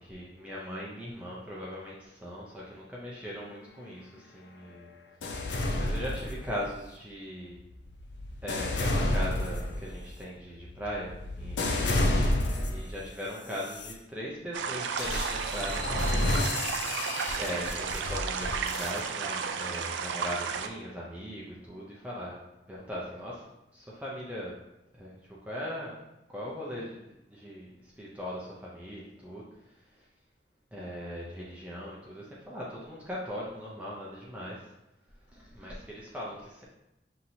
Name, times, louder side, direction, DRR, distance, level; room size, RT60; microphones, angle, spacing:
voice 1, 0.0-4.9 5.8-7.6 8.4-11.9 12.7-16.1 17.4-22.4 22.7-23.3 23.9-24.5 24.9-25.2 25.5-26.0 26.3-27.0 27.3-29.5 29.9-30.0 30.7-34.7 35.3-36.6, equal, 10° right, -6 dB, 0.5 m, -39 dB
sound 1, 5.2-6.8 7.5-13.0 13.5-13.9 15.0-19.0, left 1 dB, 70° left, 0.6 m, -30 dB
sound 2, 14.5-20.7, right 6 dB, 75° right, 0.3 m, -33 dB
5.8 x 2.9 x 2.6 m, 0.89 s
head